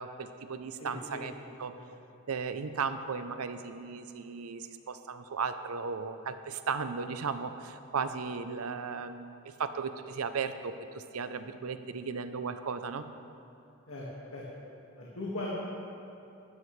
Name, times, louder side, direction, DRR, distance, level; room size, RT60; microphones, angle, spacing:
voice 1, 0.0-1.3 1.6-1.7 2.3-13.1, right 5 dB, 80° right, 10 dB, 0.6 m, -36 dB
voice 2, 0.8-1.2 1.7-1.9 13.9-14.4 15.0-15.5, left 2 dB, 70° left, -6 dB, 1.8 m, -39 dB
14.0 x 12.0 x 3.3 m, 2.7 s
head